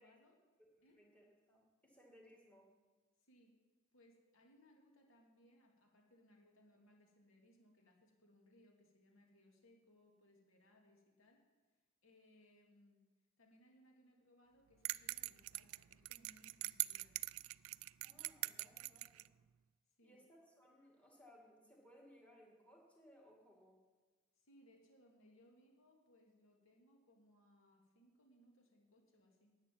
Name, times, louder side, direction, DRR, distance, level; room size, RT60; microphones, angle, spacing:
voice 1, 0.0-1.0 3.2-3.5 3.9-11.4 12.0-13.1 13.4-17.2 20.0-20.2 24.4-29.6, equal, 65° left, 1 dB, 2.5 m, -69 dB
voice 2, 0.8-2.7 18.0-19.3 20.0-23.8, equal, 5° left, -1 dB, 2.3 m, -65 dB
sound 1, 14.8-19.3, right 19 dB, 75° right, 0.3 m, -43 dB
11.0 x 8.1 x 9.2 m, 1.3 s
head